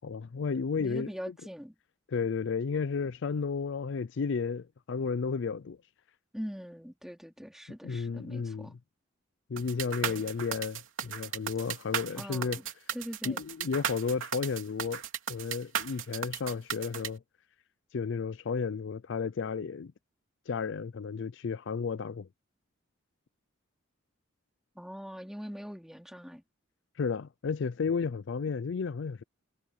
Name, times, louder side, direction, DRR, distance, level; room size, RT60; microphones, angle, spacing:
voice 1, 0.0-1.1 2.1-5.8 7.8-8.7 9.5-12.6 13.3-15.0 15.3-17.2 17.9-19.9 20.5-22.3 27.0-29.2, left 5 dB, 60° left, 0.4 m, -33 dB
voice 2, 0.8-1.8 6.3-8.7 10.0-10.3 12.2-12.7 12.9-13.4 24.8-26.4, equal, ahead, 3.5 m, -42 dB
sound 1, 9.6-17.1, right 8 dB, 70° right, 3.1 m, -35 dB
head